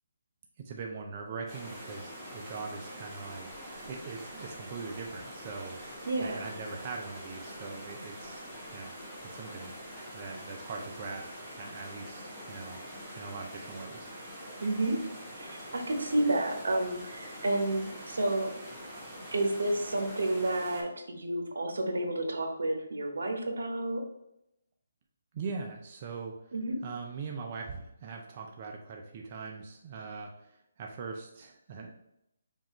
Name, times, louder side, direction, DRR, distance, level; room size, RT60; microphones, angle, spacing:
voice 1, 0.6-5.8 6.2-8.9 9.3-9.7 10.1-11.3 11.5-12.8 13.1-14.1 25.3-26.5 26.8-31.9, right 4 dB, 35° right, 1 dB, 0.5 m, -41 dB
sound 1, 1.5-20.8, equal, 5° right, 1.2 m, -45 dB
voice 2, 6.0-6.5 14.6-15.0 15.3-18.5 19.3-24.0 26.5-26.8, right 1 dB, 85° right, 4 dB, 0.9 m, -30 dB
5.3 x 2.4 x 3.0 m, 0.82 s
hypercardioid pair, 160°, 0 cm